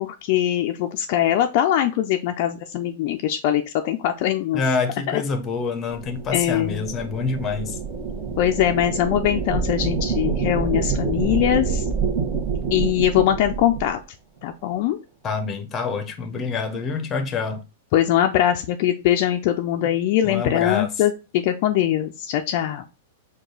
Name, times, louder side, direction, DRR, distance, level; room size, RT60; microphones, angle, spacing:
voice 1, 0.0-4.6 5.1-5.2 6.3-6.8 8.4-11.9 12.7-14.0 14.4-15.0 17.9-22.8, left 11 dB, 50° left, 0.4 m, -22 dB
voice 2, 4.5-7.8 15.2-17.6 20.2-20.9, left 4 dB, 20° left, 0.7 m, -26 dB
sound 1, 5.9-14.0, right 5 dB, 30° right, 1.0 m, -27 dB
4.7 x 2.3 x 3.8 m
hypercardioid pair, 145°, 0 cm